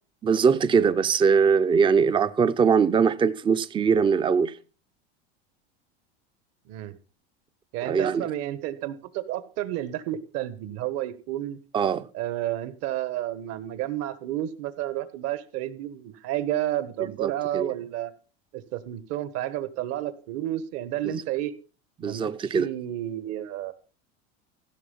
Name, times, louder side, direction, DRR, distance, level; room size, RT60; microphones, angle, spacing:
voice 1, 0.2-4.5 7.9-8.3 11.7-12.1 17.2-17.7 21.0-21.1 22.0-22.7, right 6 dB, 15° right, 0.6 m, -22 dB
voice 2, 7.7-11.6 12.1-18.1 18.5-21.5 22.0-23.7, right 13 dB, 55° right, 1.5 m, -31 dB
15.5 x 6.6 x 5.5 m
supercardioid pair, 120°, 31 cm